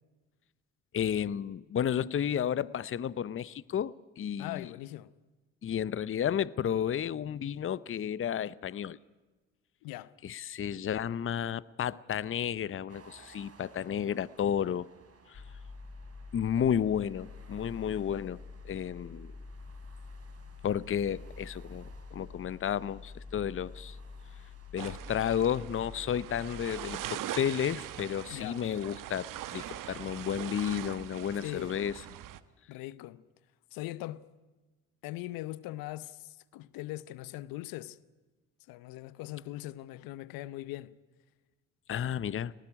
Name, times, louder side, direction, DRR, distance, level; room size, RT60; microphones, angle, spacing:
voice 1, 0.9-4.7 5.6-9.0 10.2-14.9 15.3-15.4 16.3-18.4 18.6-19.3 20.6-24.0 24.7-32.0 41.9-42.5, left 9 dB, 35° left, 0.7 m, -32 dB
voice 2, 4.4-5.1 9.8-10.1 28.3-28.6 31.4-31.8 32.7-33.2 33.7-34.2 35.0-38.0 38.7-40.9, left 16 dB, 75° left, 0.8 m, -40 dB
sound 1, 12.9-26.0, right 4 dB, 45° right, 3.6 m, -59 dB
sound 2, 15.3-27.0, left 4 dB, 50° left, 2.9 m, -47 dB
sound 3, 24.8-32.4, right 12 dB, 65° right, 1.2 m, -42 dB
19.0 x 18.5 x 9.8 m
hypercardioid pair, 55°, 35 cm